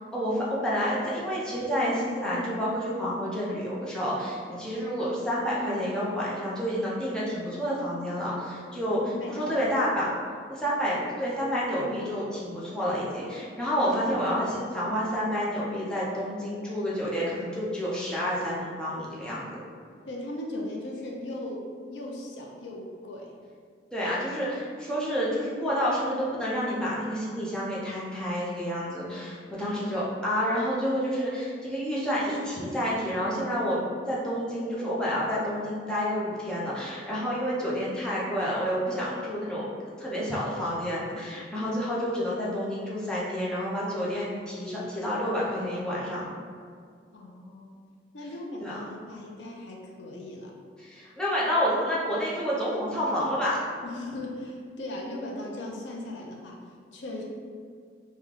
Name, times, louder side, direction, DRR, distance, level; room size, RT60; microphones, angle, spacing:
voice 1, 0.1-10.1 10.5-19.6 23.9-39.7 40.0-46.3 48.6-49.3 50.8-53.6, equal, 5° left, -7 dB, 0.6 m, -29 dB
voice 2, 9.1-9.6 20.0-23.3 41.6-41.7 47.1-47.8 48.1-50.6 53.8-56.6 56.9-57.2, left 1 dB, 85° left, -1 dB, 0.5 m, -38 dB
3.1 x 2.2 x 3.7 m, 2.1 s
head